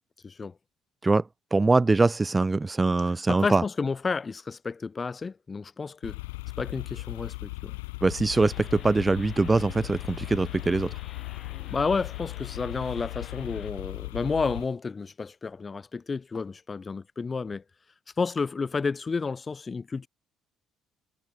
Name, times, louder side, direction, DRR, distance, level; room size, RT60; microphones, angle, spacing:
voice 1, 1.5-3.6 8.0-10.9, right 3 dB, 20° right, 1.5 m, -23 dB
voice 2, 3.3-6.2 6.6-7.8 11.7-17.6 18.2-20.1, left 4 dB, 30° left, 3.0 m, -31 dB
sound 1, 6.0-14.7, left 23 dB, 80° left, 1.0 m, -37 dB
sound 2, 8.3-13.7, left 8 dB, 50° left, 6.4 m, -49 dB
hypercardioid pair, 55°, 0 cm